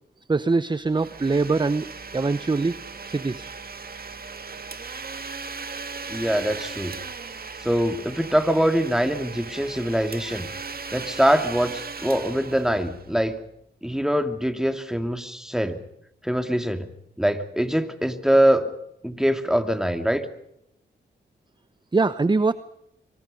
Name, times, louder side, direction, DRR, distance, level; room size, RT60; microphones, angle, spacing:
voice 1, 0.3-2.8 3.1-3.5 21.9-22.5, right 3 dB, 25° right, 14 dB, 0.9 m, -23 dB
Domestic sounds home sounds, 0.9-13.4, right 4 dB, 50° right, 2.2 m, -37 dB
voice 2, 6.1-6.9 7.6-10.5 10.9-13.4 13.8-15.8 16.2-16.9 17.2-18.7 19.0-20.2, equal, 5° right, 7 dB, 2.8 m, -23 dB
25.0 x 24.5 x 5.4 m, 0.79 s
cardioid pair, 60°, 19 cm